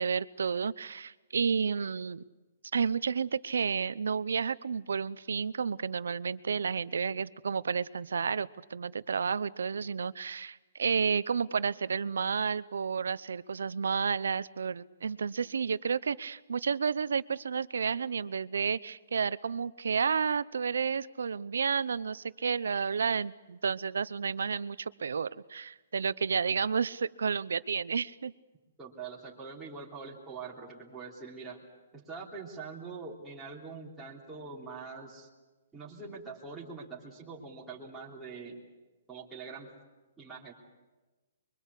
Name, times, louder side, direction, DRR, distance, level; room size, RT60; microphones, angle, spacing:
voice 1, 0.0-2.2 2.7-28.3, right 6 dB, 90° right, 18 dB, 0.7 m, -31 dB
voice 2, 28.8-31.6 31.9-35.3 35.7-38.6 39.1-39.7 40.2-40.5, right 4 dB, 5° right, -7 dB, 3.5 m, -44 dB
24.5 x 23.0 x 8.4 m, 1.2 s
hypercardioid pair, 160°, 0 cm